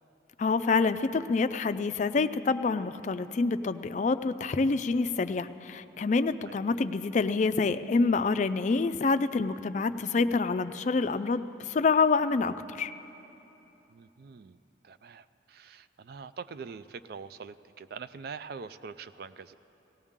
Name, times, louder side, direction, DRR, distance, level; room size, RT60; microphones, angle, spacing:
voice 1, 0.4-12.9, left 4 dB, 40° left, 12 dB, 0.3 m, -27 dB
voice 2, 13.9-14.6 14.8-19.5, right 5 dB, 55° right, 14 dB, 0.4 m, -44 dB
18.5 x 16.0 x 3.7 m, 3.0 s
head